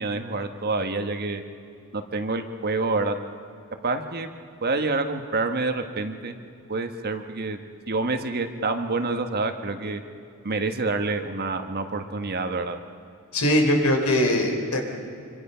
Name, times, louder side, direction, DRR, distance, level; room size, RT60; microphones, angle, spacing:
voice 1, 0.0-1.4 1.9-3.2 3.8-4.3 4.6-6.4 6.7-7.6 7.9-10.0 10.4-12.8, right 3 dB, 45° right, 6 dB, 1.4 m, -27 dB
voice 2, 13.3-14.8, left 1 dB, 85° left, 3 dB, 4.1 m, -21 dB
26.0 x 25.5 x 5.7 m, 2.6 s
head